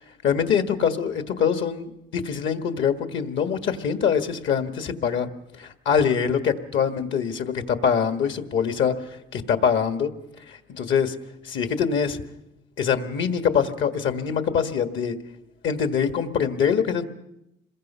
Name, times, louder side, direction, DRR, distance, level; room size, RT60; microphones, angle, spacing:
voice 1, 0.2-5.3 5.6-10.1 10.5-11.1 11.4-12.2 12.8-15.2 15.6-17.1, left 7 dB, 75° left, 8 dB, 1.7 m, -24 dB
27.0 x 21.5 x 5.6 m, 0.86 s
cardioid pair, 90°, 20 cm